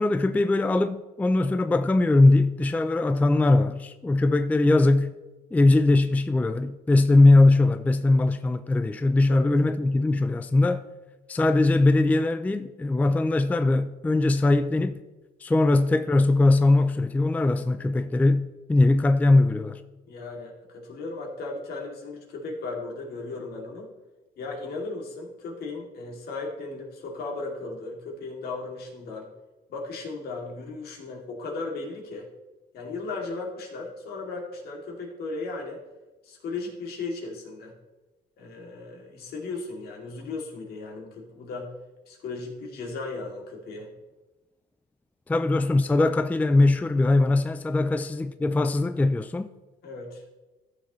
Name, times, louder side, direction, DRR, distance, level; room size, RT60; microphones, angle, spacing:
voice 1, 0.0-5.1 5.5-10.8 11.3-15.0 15.4-19.8 45.3-49.5, left 2 dB, 10° left, 0.4 m, -21 dB
voice 2, 20.0-23.9 24.4-29.3 29.7-32.3 32.7-35.8 36.2-37.7 38.4-41.7 42.1-43.9 47.8-47.9 49.8-50.2, left 3 dB, 65° left, 2.7 m, -36 dB
14.5 x 7.1 x 3.1 m
cardioid pair, 110°, 17 cm